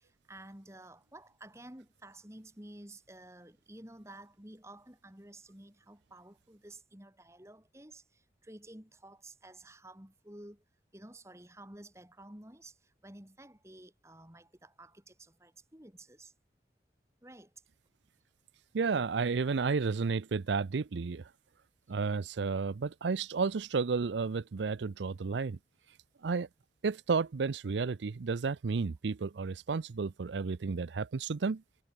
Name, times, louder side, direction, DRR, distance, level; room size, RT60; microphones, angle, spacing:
voice 1, 0.0-10.6 10.9-16.3 17.2-17.5, right 1 dB, 15° right, 2.7 m, -52 dB
voice 2, 18.7-21.2 21.9-25.6 26.2-26.5 26.8-31.6, right 4 dB, 90° right, 0.5 m, -32 dB
head